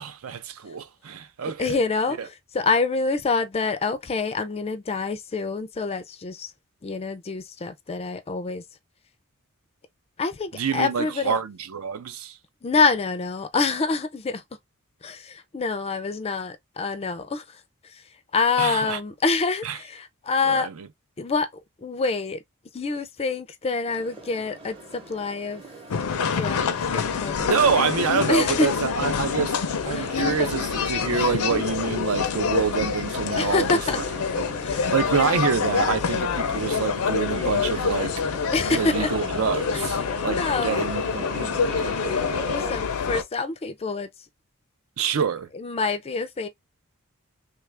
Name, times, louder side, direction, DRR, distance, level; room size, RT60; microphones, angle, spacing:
voice 1, 0.0-1.8 2.2-2.3 10.5-12.4 18.6-19.0 19.6-19.8 20.4-20.9 27.4-29.6 29.9-34.0 34.4-34.5 34.9-38.1 38.7-42.6 45.0-45.5, right 6 dB, 70° right, 0.5 m, -27 dB
voice 2, 1.6-6.5 6.8-8.6 10.2-11.4 12.6-14.4 15.0-18.0 18.3-20.7 21.2-21.5 21.8-22.4 22.7-25.6 26.2-27.6 28.3-28.7 29.9-30.5 31.1-31.3 33.4-34.0 34.6-34.8 38.5-39.1 39.7-39.8 40.3-40.9 42.5-44.1 45.5-46.5, left 4 dB, 25° left, 0.4 m, -26 dB
sound 1, 23.9-42.7, right 2 dB, 25° right, 0.8 m, -41 dB
sound 2, 25.9-43.2, left 6 dB, 80° left, 0.5 m, -26 dB
3.2 x 2.4 x 3.2 m
head